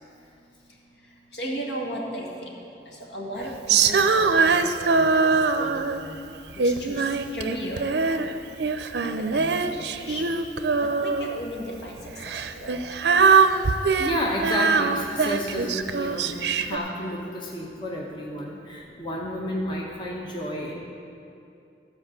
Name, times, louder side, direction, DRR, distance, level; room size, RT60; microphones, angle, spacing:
voice 1, 1.3-2.5 3.1-5.3 5.6-6.2 6.5-7.1 7.3-8.2 9.0-9.8 10.1-10.2 11.0-12.0 12.5-13.1, equal, 75° left, -2 dB, 1.8 m, -35 dB
Female singing, 3.7-6.1 6.6-8.3 8.6-11.4 12.2-16.8, right 4 dB, 70° right, 0.5 m, -22 dB
voice 2, 14.0-20.8, equal, 25° left, -2 dB, 1.0 m, -31 dB
13.5 x 4.9 x 7.4 m, 2.5 s
head